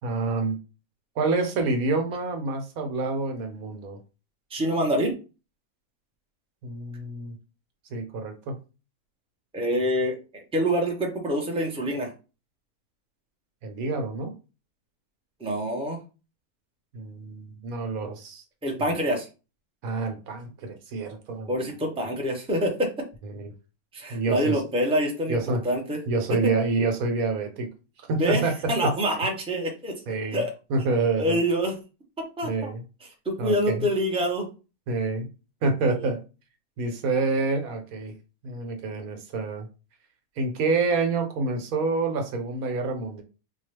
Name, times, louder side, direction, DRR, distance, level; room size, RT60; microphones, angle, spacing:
voice 1, 0.0-0.6 1.2-4.0 6.6-7.3 7.9-8.6 13.6-14.3 16.9-18.4 19.8-21.5 23.3-23.5 24.1-24.6 25.3-25.6 26.1-27.7 28.1-28.9 30.1-30.4 30.7-31.4 32.4-32.8 33.4-33.9 34.9-35.3 35.6-36.2 36.8-38.1 38.4-39.7 40.4-43.2, right 3 dB, 65° right, 5 dB, 1.2 m, -27 dB
voice 2, 4.5-5.2 9.5-12.1 15.4-16.0 18.6-19.3 21.5-22.9 23.9-25.4 25.6-26.0 28.2-30.0 30.3-30.5 31.2-31.8 32.4-32.7 33.2-34.5 35.9-36.1, equal, 5° right, 0 dB, 0.4 m, -26 dB
4.1 x 2.3 x 3.3 m, 0.32 s
omnidirectional pair, 1.7 m